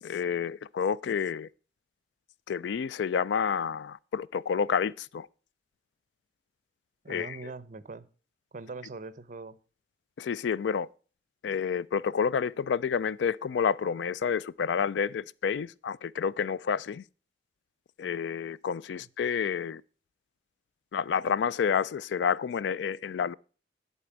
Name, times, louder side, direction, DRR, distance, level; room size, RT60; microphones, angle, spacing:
voice 1, 0.0-1.5 2.5-5.3 7.1-7.4 10.2-10.9 11.4-17.0 18.0-19.8 20.9-23.3, left 7 dB, 80° left, 0.3 m, -29 dB
voice 2, 7.0-8.1 8.5-9.6, right 3 dB, 45° right, 0.6 m, -42 dB
11.0 x 4.3 x 7.2 m
head